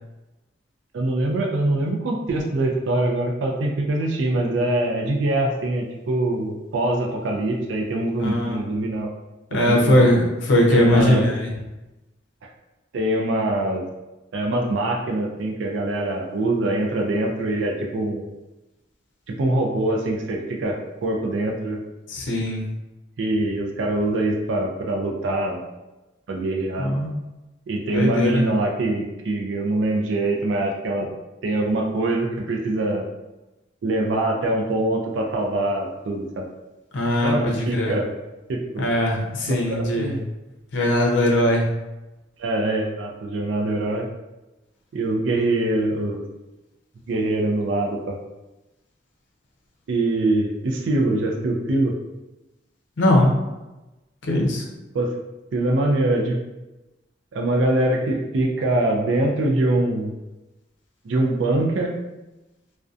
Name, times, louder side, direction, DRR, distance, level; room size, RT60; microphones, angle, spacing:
voice 1, 0.9-9.1 9.5-10.1 10.7-11.3 12.9-13.8 14.3-18.3 19.3-21.8 23.2-25.6 26.3-26.9 27.7-31.1 31.4-33.1 33.8-36.5 37.2-38.1 38.5-38.9 39.7-40.2 42.4-44.1 44.9-46.2 47.1-48.2 49.9-51.9 54.9-55.1 55.5-56.4 57.3-60.1 61.0-62.0, right 2 dB, 85° right, 0 dB, 0.4 m, -23 dB
voice 2, 8.2-8.6 9.5-11.5 22.1-22.6 26.8-27.1 27.9-28.5 36.9-37.9 38.8-40.1 40.7-41.7 53.0-53.3 54.3-54.6, left 1 dB, 80° left, -1 dB, 0.5 m, -20 dB
2.5 x 2.1 x 2.4 m, 1.0 s
head